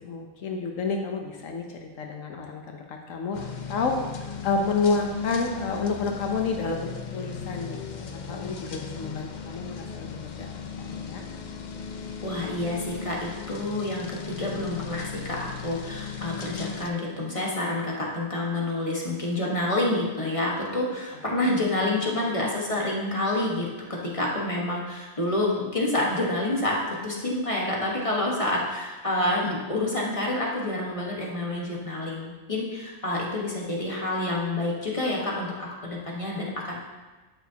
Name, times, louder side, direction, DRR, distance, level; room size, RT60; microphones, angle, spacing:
voice 1, 0.0-10.5 10.8-11.2, left 4 dB, 80° left, 2 dB, 1.1 m, -30 dB
sound 1, 3.3-16.9, left 6 dB, 50° left, 0.5 m, -37 dB
voice 2, 12.2-23.7 24.1-26.8 27.0-36.8, left 1 dB, 25° left, -3 dB, 1.4 m, -28 dB
12.0 x 6.2 x 2.8 m, 1.2 s
omnidirectional pair, 1.3 m